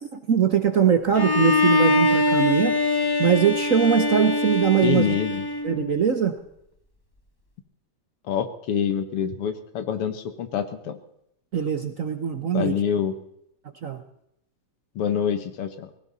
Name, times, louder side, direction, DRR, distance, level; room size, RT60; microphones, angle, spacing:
voice 1, 0.1-2.8 3.2-5.1 5.6-6.4 11.5-12.7 13.8-14.0, right 7 dB, 55° right, 7 dB, 1.0 m, -21 dB
Bowed string instrument, 1.1-6.2, left 2 dB, 20° left, 0.6 m, -23 dB
voice 2, 4.8-5.5 8.3-11.0 12.5-13.1 15.0-15.9, left 8 dB, 85° left, 9 dB, 2.3 m, -26 dB
20.0 x 17.5 x 4.1 m, 0.77 s
omnidirectional pair, 2.4 m